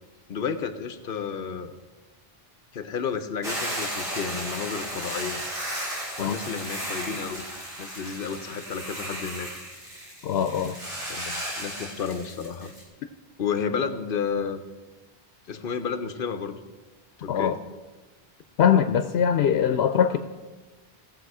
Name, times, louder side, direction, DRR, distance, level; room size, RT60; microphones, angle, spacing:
voice 1, 0.3-1.7 2.7-5.4 6.2-7.4 7.8-9.5 11.1-12.7 13.4-14.6 15.5-16.6 17.2-17.6, left 6 dB, 60° left, 11 dB, 0.9 m, -31 dB
Hiss / Boiling, 3.4-12.8, equal, 45° right, 3.2 m, -34 dB
voice 2, 10.2-10.8 17.3-17.6 18.6-20.2, left 8 dB, 90° left, 9 dB, 0.9 m, -22 dB
16.5 x 7.0 x 4.8 m, 1.2 s
omnidirectional pair, 1.0 m